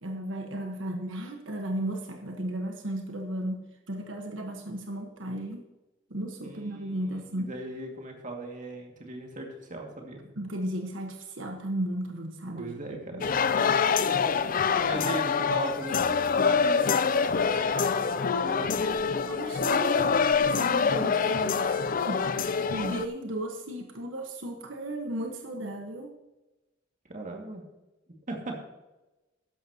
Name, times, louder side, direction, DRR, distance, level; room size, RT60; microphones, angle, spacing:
voice 1, 0.0-5.7 6.1-7.5 10.4-13.2 19.2-26.2, right 1 dB, 90° right, 3 dB, 1.4 m, -35 dB
voice 2, 6.4-10.2 12.6-13.4 14.8-16.9 17.4-19.0 27.1-27.6 28.3-28.6, right 2 dB, 45° right, 1 dB, 2.2 m, -39 dB
sound 1, 13.2-23.1, left 5 dB, 45° left, 0.5 m, -25 dB
13.5 x 10.5 x 3.0 m, 1.0 s
head